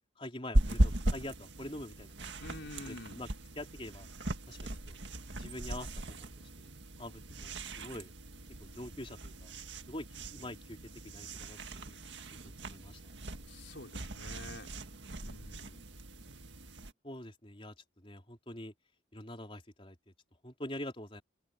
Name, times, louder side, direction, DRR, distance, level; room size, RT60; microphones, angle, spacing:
voice 1, 0.2-2.3 2.9-3.3 3.6-4.1 4.5-5.0 5.4-6.3 6.6-6.7 7.0-8.1 8.6-9.5 9.9-10.1 10.3-10.8 11.0-11.6 11.9-12.0 12.4-13.0 13.3-13.4 17.0-18.7 19.1-20.0 20.4-21.2, left 1 dB, 30° left, 3.9 m, -45 dB
sound 1, 0.5-16.9, right 1 dB, 65° right, 1.9 m, -37 dB
voice 2, 2.4-3.2 13.5-14.7 15.2-15.8, left 2 dB, 70° left, 4.8 m, -48 dB
head